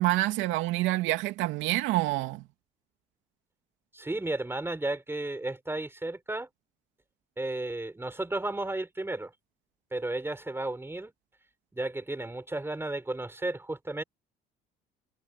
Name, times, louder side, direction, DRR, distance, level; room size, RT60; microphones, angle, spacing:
voice 1, 0.0-2.4, right 17 dB, 85° right, 2.7 m, -27 dB
voice 2, 3.9-6.5 7.4-9.3 9.9-11.1 11.7-14.0, right 2 dB, 10° right, 5.0 m, -33 dB
supercardioid pair, 85°, 19 cm